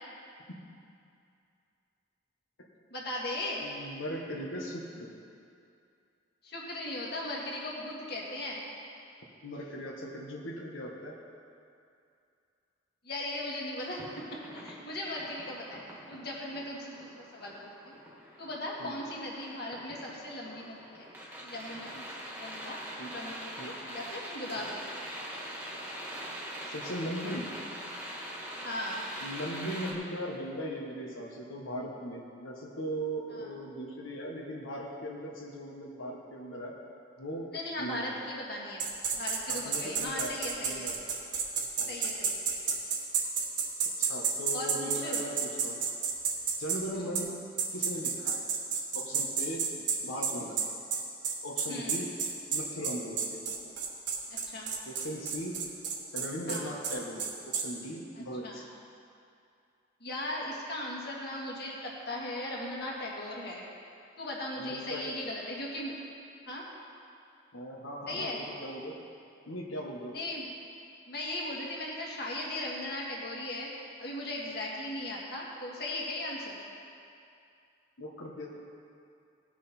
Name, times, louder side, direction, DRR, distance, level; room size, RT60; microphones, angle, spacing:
voice 1, 2.9-3.6 6.4-8.6 13.0-14.0 14.3-15.8 16.1-18.0 18.4-21.1 21.4-22.0 22.4-22.8 23.0-24.9 28.6-29.0 33.3-33.5 37.5-38.9 39.1-40.9 41.9-42.7 44.5-45.2 46.9-47.0 51.7-52.0 54.3-54.7 56.5-56.7 58.4-58.6 60.0-63.6 64.2-66.0 66.5-66.6 68.1-68.4 70.1-70.5 71.1-76.6, left 1 dB, 55° left, -3 dB, 1.9 m, -38 dB
voice 2, 3.6-5.1 9.4-11.2 18.8-18.9 23.0-23.1 23.6-23.7 24.6-24.7 26.7-27.5 29.2-36.8 37.2-37.5 37.8-38.2 39.5-40.3 40.6-41.0 41.8-41.9 44.0-45.8 46.6-47.4 47.7-48.4 48.9-49.6 50.0-50.8 51.4-52.1 52.5-53.6 54.8-55.5 56.1-57.2 57.5-58.7 64.6-65.1 67.5-69.0 69.5-70.1 78.0-78.5, equal, 90° left, -3 dB, 1.3 m, -38 dB
sound 1, 13.9-29.9, equal, 10° right, 1.5 m, -43 dB
sound 2, 38.8-46.8 47.1-47.3 47.6-57.7, right 6 dB, 60° right, 1.3 m, -31 dB
18.0 x 6.2 x 4.3 m, 2.5 s
head